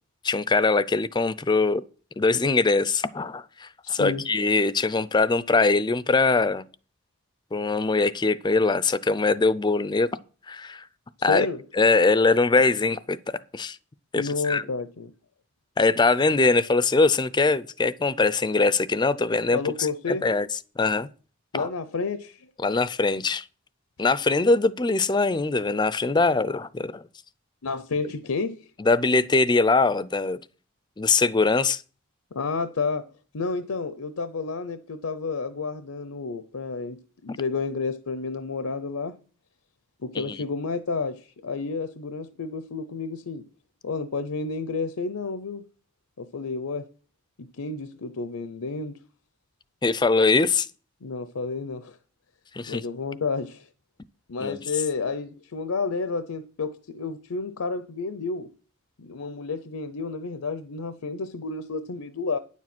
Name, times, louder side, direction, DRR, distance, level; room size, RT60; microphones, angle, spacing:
voice 1, 0.2-1.8 2.2-6.7 7.5-10.1 10.5-10.8 11.2-11.5 11.8-13.8 14.1-14.6 15.8-20.5 20.8-21.1 21.5-21.7 22.6-23.4 24.0-27.0 28.8-30.4 31.0-31.8 49.8-50.7 52.5-52.8 54.4-54.6, left 3 dB, 20° left, 0.4 m, -22 dB
voice 2, 3.8-4.3 11.2-11.6 14.2-15.1 19.5-20.2 21.5-22.5 27.6-28.7 32.3-33.1 33.3-39.1 40.0-43.4 43.8-45.6 46.2-46.8 47.4-49.0 51.0-52.0 52.7-53.7 54.3-58.5 59.0-62.4, left 4 dB, 80° left, 0.7 m, -30 dB
9.9 x 7.4 x 6.0 m
head